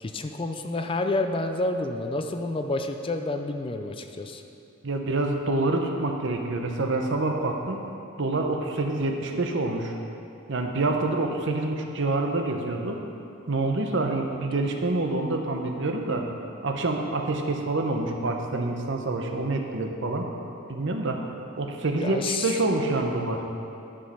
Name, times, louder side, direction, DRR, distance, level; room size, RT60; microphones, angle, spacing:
voice 1, 0.0-4.4 22.0-22.5, left 2 dB, 25° left, 6 dB, 0.4 m, -29 dB
voice 2, 4.8-7.8 8.2-9.9 10.5-13.0 13.5-16.3 16.6-20.2 20.7-21.2 21.6-23.4, right 2 dB, 60° right, 3 dB, 0.8 m, -27 dB
11.0 x 5.2 x 5.6 m, 2.7 s
head